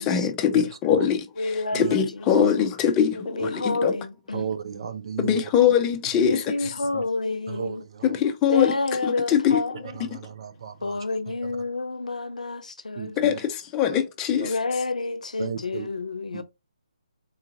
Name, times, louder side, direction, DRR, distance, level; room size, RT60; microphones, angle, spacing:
voice 1, 0.0-4.0 5.2-6.7 8.0-8.7 9.0-9.6 10.1-10.2 13.2-14.5, left 8 dB, 15° left, 0.6 m, -23 dB
voice 2, 1.4-2.4 3.1-4.5 6.3-7.8 8.5-10.0 10.8-13.4 14.4-16.4, left 3 dB, 80° left, 0.7 m, -29 dB
voice 3, 4.3-5.4 6.1-6.4 6.9-7.0 7.5-8.2 9.9-11.0 13.0-13.4 14.3-14.5 15.4-15.9 16.3-16.4, right 7 dB, 50° right, 0.6 m, -34 dB
3.9 x 2.5 x 3.9 m
figure-of-eight pair, 150°, 4 cm